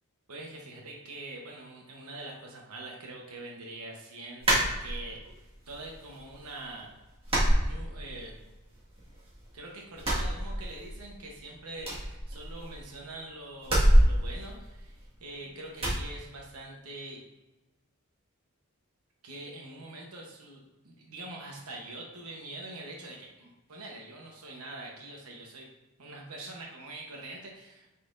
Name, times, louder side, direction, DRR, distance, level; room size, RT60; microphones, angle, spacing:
voice 1, 0.3-5.4 5.7-6.9 7.6-8.4 9.5-17.2 19.2-25.7 26.0-27.9, right 2 dB, 80° right, -2 dB, 1.0 m, -44 dB
sound 1, 4.4-5.3 5.7-6.4 6.7-6.8 7.2-8.4 8.7-9.5 9.9-11.1 11.3-11.4 11.8-12.9 13.6-15.3 15.8-16.0, equal, 25° right, 1.8 m, -26 dB
9.1 x 4.1 x 2.6 m, 1.1 s
head